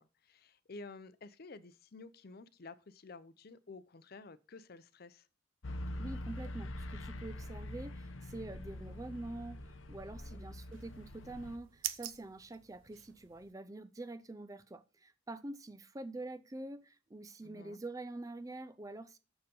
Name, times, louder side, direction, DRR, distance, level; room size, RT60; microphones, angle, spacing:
voice 1, 0.0-5.3 10.1-10.4 17.4-17.8, left 3 dB, 50° left, 0.6 m, -52 dB
sound 1, 5.6-11.6, left 1 dB, 80° left, 0.9 m, -44 dB
voice 2, 6.0-19.2, right 2 dB, 15° right, 0.4 m, -46 dB
sound 2, 10.7-13.5, right 13 dB, 75° right, 0.7 m, -46 dB
6.8 x 6.7 x 5.3 m
head